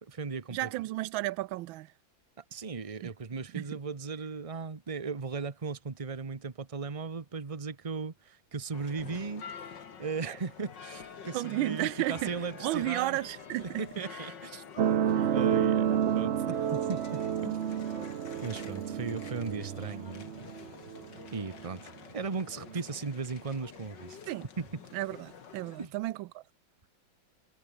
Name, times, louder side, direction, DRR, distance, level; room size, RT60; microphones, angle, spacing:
voice 1, 0.0-0.7 2.4-13.2 13.6-14.6 15.3-17.6 18.4-20.5 21.3-21.8 22.1-24.7 25.8-25.9, right 4 dB, 20° right, 1.1 m, -37 dB
voice 2, 0.5-1.9 3.0-3.1 3.5-3.6 11.3-13.8 14.1-14.2 15.1-15.3 24.3-24.5 24.9-26.4, right 17 dB, 90° right, 1.4 m, -33 dB
sound 1, 8.7-25.9, left 7 dB, 65° left, 2.5 m, -48 dB
sound 2, 14.8-21.8 22.7-22.8, right 9 dB, 55° right, 0.7 m, -30 dB
omnidirectional pair, 2.1 m